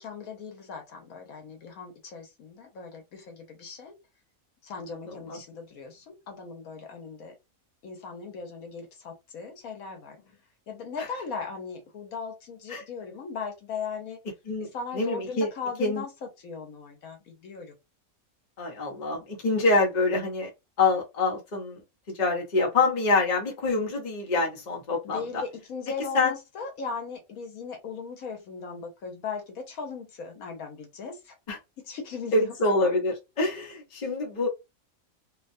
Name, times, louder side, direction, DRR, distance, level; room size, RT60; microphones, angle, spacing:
voice 1, 0.0-3.9 4.6-7.3 7.8-10.4 10.7-14.2 14.6-17.7 25.0-31.3 31.8-32.6, left 5 dB, 80° left, 1.3 m, -38 dB
voice 2, 4.9-5.4 12.7-12.8 14.5-14.7 14.9-15.5 15.8-16.0 18.6-20.5 20.8-21.8 22.1-25.4 26.1-26.3 31.5-31.6 32.3-34.5, left 3 dB, 35° left, 0.9 m, -26 dB
2.9 x 2.3 x 2.5 m
omnidirectional pair, 1.5 m